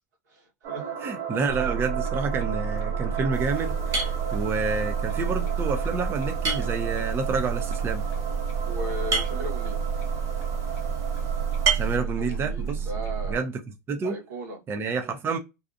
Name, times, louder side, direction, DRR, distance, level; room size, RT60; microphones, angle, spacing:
voice 1, 0.3-0.9 8.6-9.8 11.9-13.4 14.0-14.6, equal, 85° right, 1.1 m, -37 dB
sound 1, 0.6-11.7, right 7 dB, 60° right, 0.9 m, -36 dB
voice 2, 1.0-8.0 11.7-12.9 13.3-13.6 13.9-14.2 14.7-15.4, right 4 dB, 25° right, 0.5 m, -29 dB
sound 2, 1.5-13.4, right 6 dB, 65° left, 0.5 m, -30 dB
sound 3, 3.3-12.0, right 4 dB, 40° right, 1.2 m, -33 dB
2.7 x 2.3 x 2.4 m
hypercardioid pair, 105°, 9 cm